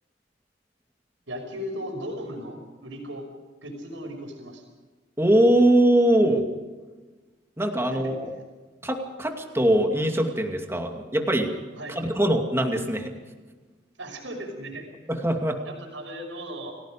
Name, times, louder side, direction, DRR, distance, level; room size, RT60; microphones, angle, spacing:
voice 1, 1.3-3.3 3.6-4.6 7.9-8.2 11.8-12.0 14.0-14.9 15.6-16.7, equal, 85° right, 3 dB, 5.7 m, -36 dB
voice 2, 5.2-6.5 7.6-8.1 8.8-11.5 12.0-13.1 15.1-15.6, right 1 dB, 15° right, 3 dB, 2.5 m, -22 dB
29.5 x 18.0 x 5.1 m, 1.3 s
head